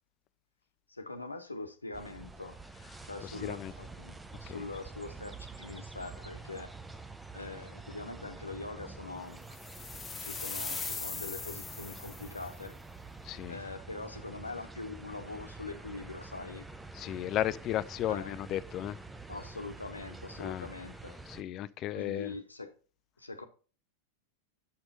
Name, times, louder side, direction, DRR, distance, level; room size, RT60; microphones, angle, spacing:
voice 1, 0.9-2.6 3.0-6.7 7.3-9.4 10.2-12.8 13.5-16.7 18.1-18.4 19.3-21.2 21.9-22.7 23.2-23.4, left 3 dB, 80° left, 1.0 m, -43 dB
sound 1, 1.9-21.4, right 3 dB, 5° right, 0.7 m, -47 dB
voice 2, 3.2-3.7 4.5-4.6 13.2-13.6 16.9-19.0 20.4-20.7 21.3-22.3, left 12 dB, 35° left, 0.4 m, -34 dB
sound 2, 9.5-12.5, left 4 dB, 15° left, 1.1 m, -40 dB
6.5 x 6.0 x 5.4 m
figure-of-eight pair, 90°, 0 cm